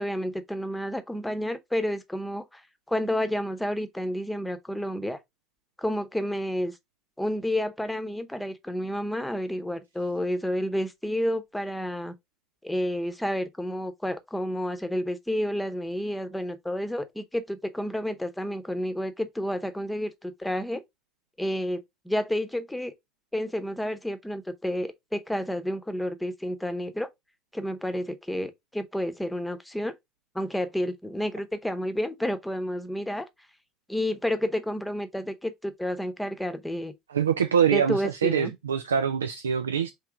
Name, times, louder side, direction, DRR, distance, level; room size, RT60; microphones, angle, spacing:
voice 1, 0.0-2.6 2.9-5.2 5.8-6.8 7.2-12.2 12.6-20.8 21.4-22.9 23.3-27.1 27.5-29.9 30.3-33.3 33.9-36.9 37.7-38.5, equal, 5° left, 0.9 m, -30 dB
voice 2, 37.1-39.9, right 8 dB, 85° right, 0.3 m, -24 dB
3.7 x 3.0 x 4.6 m
figure-of-eight pair, 65°, 0 cm